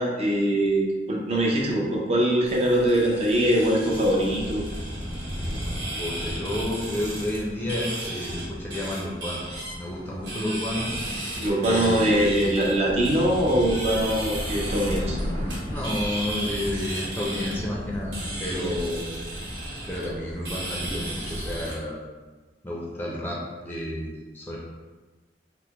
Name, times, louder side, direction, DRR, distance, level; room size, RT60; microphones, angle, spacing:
voice 1, 0.0-4.6 10.1-10.2 11.4-15.2 18.6-18.7, right 1 dB, 35° right, -2 dB, 0.5 m, -23 dB
sound 1, 2.4-21.7, right 1 dB, 70° right, 1.4 m, -33 dB
voice 2, 5.9-9.4 9.8-10.9 11.6-12.6 15.6-18.1 18.4-19.5 19.9-22.0 22.6-23.4 23.6-24.6, left 1 dB, 10° left, -4 dB, 0.5 m, -31 dB
3.3 x 2.1 x 2.9 m, 1.3 s
head